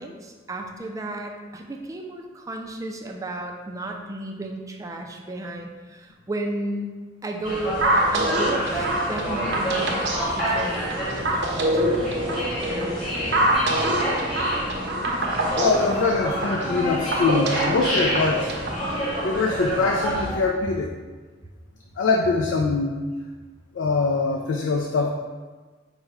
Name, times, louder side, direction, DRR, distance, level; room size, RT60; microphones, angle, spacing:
voice 1, 0.0-6.9 7.2-12.1, right 2 dB, 20° right, 2 dB, 0.3 m, -33 dB
sound 1, 7.4-20.3, equal, 25° left, 1.3 m, -28 dB
sound 2, 7.8-18.8, right 1 dB, 65° right, 0.6 m, -25 dB
voice 2, 15.6-18.5 18.9-20.9 22.0-23.0 23.7-25.1, left 3 dB, 80° left, 2 dB, 0.4 m, -23 dB
4.8 x 2.1 x 4.6 m, 1.4 s
head